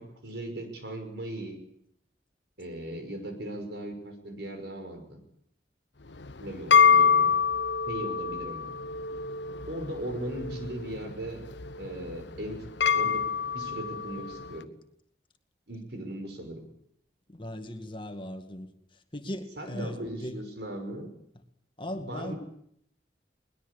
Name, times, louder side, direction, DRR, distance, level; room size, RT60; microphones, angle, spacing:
voice 1, 0.0-1.6 2.6-5.2 6.4-7.3 7.9-8.7 9.7-11.4 11.8-12.7 12.9-13.3 13.5-14.7 15.7-16.6 19.6-21.1 22.1-22.4, right 1 dB, 70° right, 6 dB, 5.9 m, -38 dB
sound 1, 6.1-14.6, left 6 dB, 85° left, 1.0 m, -26 dB
voice 2, 17.3-20.4 21.8-22.3, left 1 dB, 30° left, 6 dB, 2.1 m, -38 dB
22.0 x 20.5 x 8.5 m, 0.71 s
head